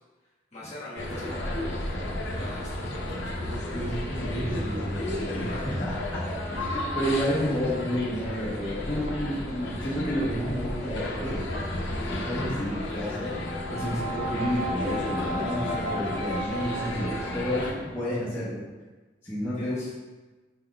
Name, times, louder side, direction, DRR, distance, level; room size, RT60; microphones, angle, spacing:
voice 1, 0.5-1.6 2.4-3.9 13.8-14.0 19.6-19.9, left 1 dB, 35° left, -7 dB, 1.2 m, -43 dB
sound 1, 1.0-17.7, left 1 dB, 70° left, 0.6 m, -33 dB
voice 2, 3.7-11.4 12.1-13.3 13.7-18.6 19.2-19.7, equal, 15° left, -12 dB, 0.8 m, -31 dB
Brass instrument, 13.2-17.6, right 1 dB, 5° right, 1.0 m, -35 dB
4.7 x 4.1 x 2.2 m, 1.2 s
head